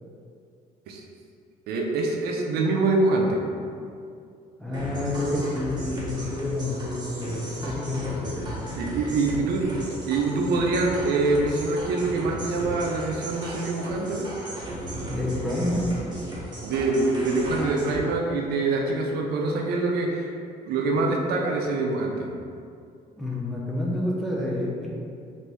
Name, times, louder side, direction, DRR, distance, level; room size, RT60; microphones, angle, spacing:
voice 1, 1.7-3.4 8.8-9.7 10.1-14.2 16.6-20.3 20.7-22.3, right 3 dB, 70° right, 0 dB, 0.5 m, -25 dB
voice 2, 4.6-8.5 15.1-15.9 23.2-25.0, left 2 dB, ahead, -4 dB, 0.5 m, -28 dB
sound 1, 4.7-18.0, right 1 dB, 25° right, 0.9 m, -35 dB
3.0 x 2.6 x 3.3 m, 2.4 s
cardioid pair, 110°, 17 cm